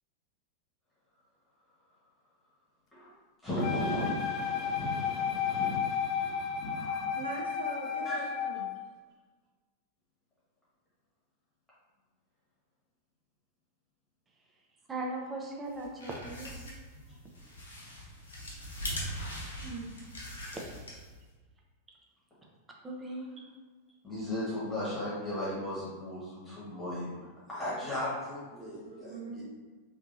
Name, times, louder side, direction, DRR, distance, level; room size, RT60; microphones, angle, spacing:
voice 1, 3.4-7.2 8.0-8.2 16.9-17.0 24.0-27.1 27.5-29.4, left 1 dB, 10° left, -9 dB, 1.4 m, -36 dB
Wind instrument woodwind instrument, 3.6-8.7, left 7 dB, 35° left, 0.4 m, -33 dB
voice 2, 7.1-8.8 19.6-19.9 28.8-29.4, right 3 dB, 70° right, -1 dB, 0.7 m, -42 dB
voice 3, 14.9-16.6 22.8-23.4, right 2 dB, 15° right, -1 dB, 0.7 m, -38 dB
sound 1, 15.7-21.3, equal, 70° left, 0.8 m, -41 dB
3.5 x 3.0 x 2.6 m, 1.4 s
figure-of-eight pair, 90°, 0 cm